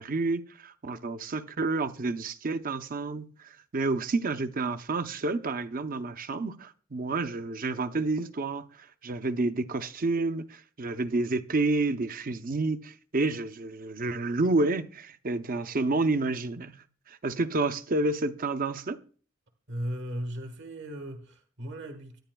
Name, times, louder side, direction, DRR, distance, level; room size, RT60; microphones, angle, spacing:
voice 1, 0.0-16.8 17.1-19.0, right 3 dB, 45° right, 0.7 m, -29 dB
voice 2, 19.7-22.2, equal, 60° right, 1.6 m, -37 dB
23.0 x 10.5 x 2.3 m
head